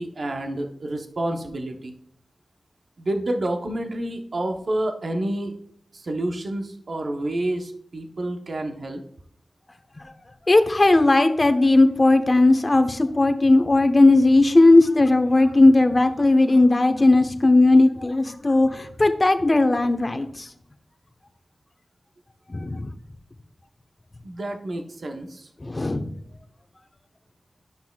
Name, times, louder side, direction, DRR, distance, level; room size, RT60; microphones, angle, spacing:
voice 1, 0.0-1.9 3.0-5.5 5.9-9.0 24.2-25.5, right 1 dB, 65° right, 4 dB, 0.9 m, -29 dB
voice 2, 10.5-20.5 22.5-22.9 25.6-26.1, left 2 dB, 40° left, 8 dB, 1.0 m, -17 dB
11.5 x 5.8 x 2.3 m, 0.68 s
cardioid pair, 40°, 0 cm